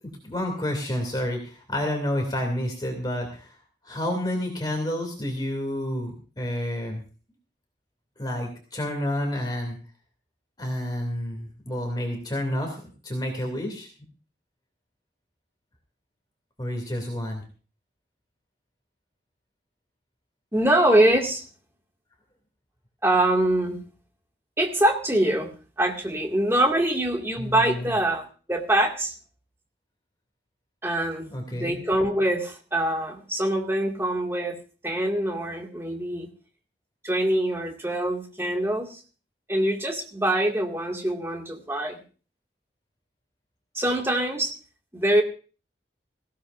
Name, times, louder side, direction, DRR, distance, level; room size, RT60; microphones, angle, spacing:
voice 1, 0.2-3.5 3.8-7.0 8.2-9.8 10.6-13.9 16.6-17.4 27.3-27.9 31.3-31.8, left 1 dB, 25° left, 2 dB, 2.7 m, -29 dB
voice 2, 20.5-21.4 23.0-23.8 24.6-25.5 25.8-29.1 30.8-34.6 34.8-36.3 37.0-39.0 39.5-42.0 43.7-44.5 44.9-45.2, right 1 dB, 15° right, 1 dB, 2.1 m, -24 dB
18.5 x 16.0 x 2.6 m, 0.37 s
head